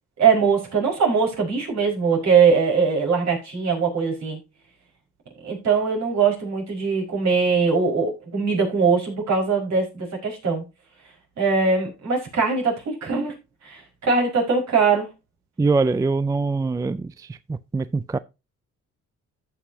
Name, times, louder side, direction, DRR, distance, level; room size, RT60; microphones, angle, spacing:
voice 1, 0.2-4.4 5.4-10.6 11.4-13.3 13.6-15.1, right 5 dB, 65° right, 5.0 m, -21 dB
voice 2, 15.6-17.1 17.5-18.2, right 3 dB, 10° right, 0.4 m, -23 dB
14.0 x 6.2 x 2.8 m
cardioid pair, 90°, 30 cm